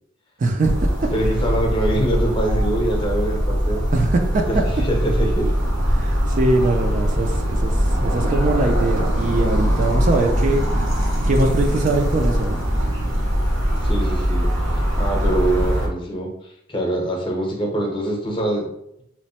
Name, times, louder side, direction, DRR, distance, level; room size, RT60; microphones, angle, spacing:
voice 1, 0.4-1.1 3.9-4.6 6.0-7.8 8.0-10.6 11.3-12.6, right 2 dB, 40° right, 3 dB, 0.4 m, -22 dB
sound 1, 0.6-15.9, equal, 75° right, 1.1 m, -21 dB
voice 2, 1.1-3.8 4.5-5.5 13.8-14.5 14.7-18.7, right 1 dB, 25° left, -1 dB, 0.7 m, -24 dB
3.0 x 2.1 x 4.2 m, 0.79 s
head